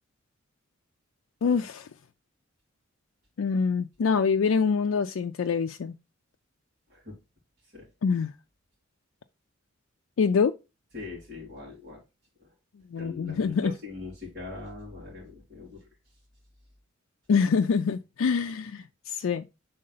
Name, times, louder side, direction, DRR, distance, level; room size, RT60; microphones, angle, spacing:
voice 1, 1.4-1.9 3.4-5.9 8.0-8.3 10.2-10.5 12.9-13.7 17.3-19.4, left 5 dB, 75° left, 0.4 m, -25 dB
voice 2, 10.9-12.0 12.9-15.9, left 3 dB, 50° right, 2.5 m, -41 dB
6.5 x 3.7 x 3.9 m
head